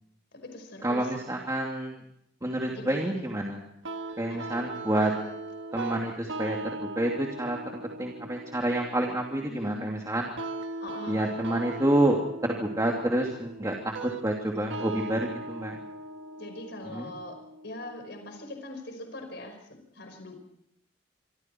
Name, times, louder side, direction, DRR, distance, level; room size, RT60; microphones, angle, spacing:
voice 1, 0.3-1.4 2.7-3.2 4.5-4.7 9.5-9.9 10.8-11.2 14.6-15.2 16.4-17.4 17.6-20.4, left 1 dB, 60° left, 5 dB, 5.5 m, -42 dB
voice 2, 0.8-1.9 2.4-3.6 4.2-5.1 5.7-10.3 11.1-12.2 12.4-15.8 16.8-17.1, right 1 dB, 15° right, -1 dB, 2.8 m, -28 dB
sound 1, 3.8-18.8, right 2 dB, 70° right, 1.6 m, -40 dB
27.0 x 25.5 x 4.6 m, 0.74 s
head